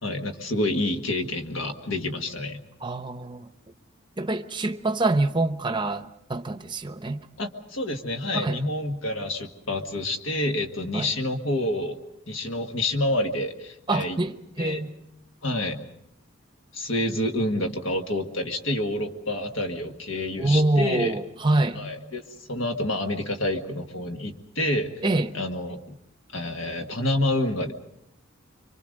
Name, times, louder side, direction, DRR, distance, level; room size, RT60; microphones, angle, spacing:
voice 1, 0.0-2.6 7.4-12.0 12.3-14.2 14.6-14.8 15.4-15.8 16.7-21.2 21.8-22.2 22.5-24.9 25.3-26.0 26.3-27.7, left 1 dB, 65° left, 1.8 m, -28 dB
voice 2, 2.8-3.5 4.2-7.2 8.3-8.6 10.9-11.1 13.9-14.9 20.4-21.8 25.0-25.4, right 2 dB, 20° right, 0.8 m, -25 dB
27.0 x 24.5 x 5.3 m
head